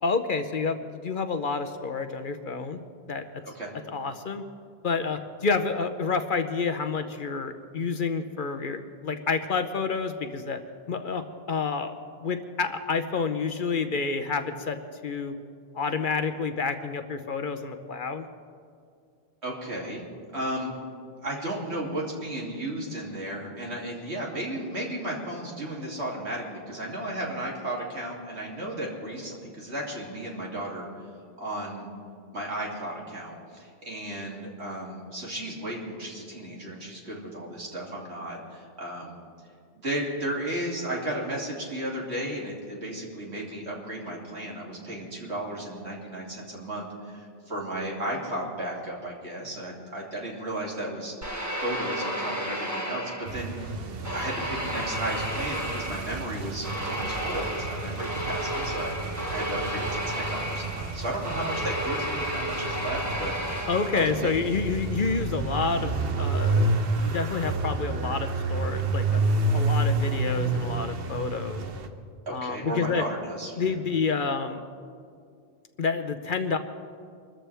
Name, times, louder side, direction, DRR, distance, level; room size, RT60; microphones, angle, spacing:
voice 1, 0.0-2.8 3.1-3.2 3.9-4.4 4.8-10.6 10.9-11.2 11.5-11.9 12.2-15.3 15.7-18.3 63.7-66.7 66.9-69.2 69.5-71.6 72.3-73.0 73.6-74.6 75.8-76.6, left 4 dB, 55° left, 8 dB, 0.9 m, -29 dB
voice 2, 19.4-20.0 20.3-20.8 21.2-30.9 31.4-31.9 32.3-39.2 39.7-51.1 51.6-53.7 54.0-63.3 63.9-64.4 72.3-73.7, right 1 dB, 80° right, -3 dB, 3.1 m, -34 dB
sound 1, 51.2-53.6 54.0-64.4, equal, 15° right, 1.5 m, -32 dB
sound 2, 53.3-71.9, right 2 dB, 60° right, 1.1 m, -30 dB
25.0 x 13.5 x 3.4 m, 2.2 s
omnidirectional pair, 1.1 m